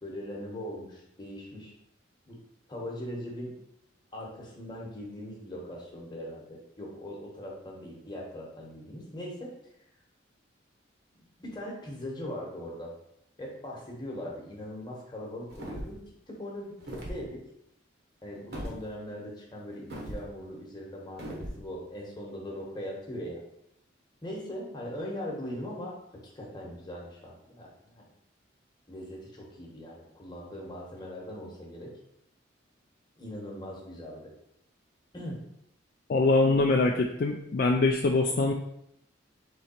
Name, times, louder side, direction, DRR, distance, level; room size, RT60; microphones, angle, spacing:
voice 1, 0.0-1.7 2.3-2.4 2.7-3.5 4.1-9.5 11.1-12.9 13.4-16.0 16.3-17.4 18.2-23.4 24.2-28.1 28.9-31.9 33.2-34.3 35.1-35.4, left 1 dB, 20° left, -2 dB, 1.0 m, -40 dB
sound 1, 15.5-16.1 16.8-17.2 18.5-18.8 19.9-20.2 21.2-21.6, equal, 55° right, 0.9 m, -38 dB
voice 2, 36.1-38.5, left 3 dB, 50° left, 1 dB, 0.3 m, -23 dB
3.8 x 3.1 x 4.3 m, 0.78 s
head